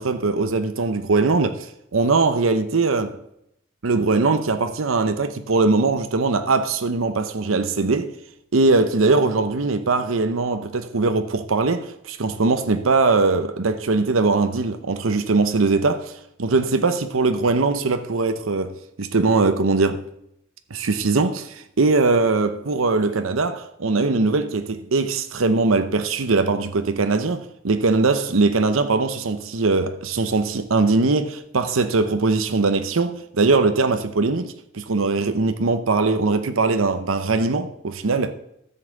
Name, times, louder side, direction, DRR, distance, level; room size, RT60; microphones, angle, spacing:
voice 1, 0.0-3.2 3.8-8.1 8.5-20.0 20.7-38.3, right 3 dB, 90° right, 0.8 m, -21 dB
13.5 x 5.6 x 8.0 m
head